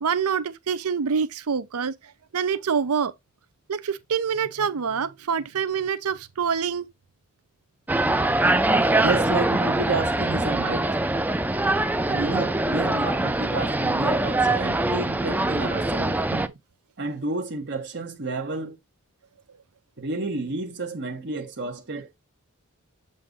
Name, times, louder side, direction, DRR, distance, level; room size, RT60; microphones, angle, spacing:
voice 1, 0.0-3.1 3.7-6.9 16.0-16.5, right 6 dB, 75° right, 0.6 m, -26 dB
sound 1, 7.9-16.5, right 2 dB, 10° right, 0.4 m, -23 dB
voice 2, 9.0-10.9 12.1-16.2 17.0-18.8 20.0-22.1, right 3 dB, 50° right, 1.2 m, -30 dB
7.6 x 2.6 x 5.0 m
head